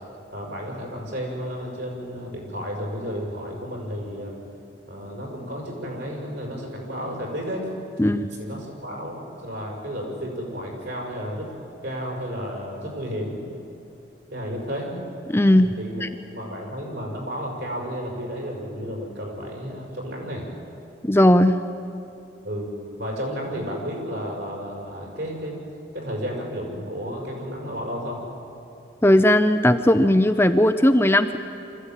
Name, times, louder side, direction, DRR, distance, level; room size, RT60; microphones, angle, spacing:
voice 1, 0.3-4.4 4.9-7.7 8.4-11.5 11.8-13.4 14.3-14.9 15.8-16.0 16.3-20.5 22.4-25.6 25.9-28.2, equal, 70° right, -1 dB, 6.1 m, -32 dB
voice 2, 15.3-15.7 16.0-16.1 21.0-21.6 29.0-31.4, left 1 dB, 10° left, 8 dB, 0.6 m, -17 dB
24.5 x 14.5 x 9.1 m, 2.7 s
head